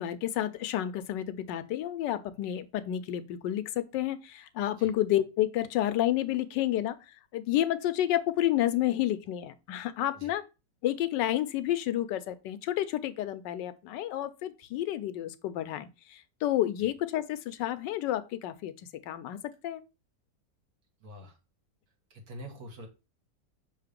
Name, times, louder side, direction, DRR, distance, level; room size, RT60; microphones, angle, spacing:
voice 1, 0.0-10.4 10.8-18.7 19.1-19.4 19.6-19.8, left 13 dB, 85° left, 1.3 m, -30 dB
voice 2, 21.0-21.4 22.1-22.9, equal, 55° right, 1.9 m, -45 dB
5.7 x 3.6 x 5.1 m
omnidirectional pair, 1.9 m